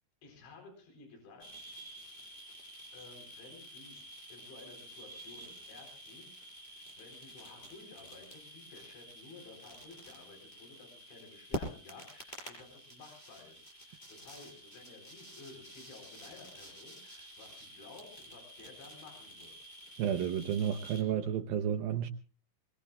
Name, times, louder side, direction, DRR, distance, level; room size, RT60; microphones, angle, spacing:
voice 1, 0.2-1.5 2.9-4.0 4.3-19.6, left 3 dB, 70° left, 6.4 m, -54 dB
sound 1, 1.4-21.0, equal, 10° left, 5.7 m, -49 dB
voice 2, 20.0-22.1, right 9 dB, 85° right, 2.0 m, -31 dB
23.5 x 22.0 x 2.4 m
omnidirectional pair, 5.4 m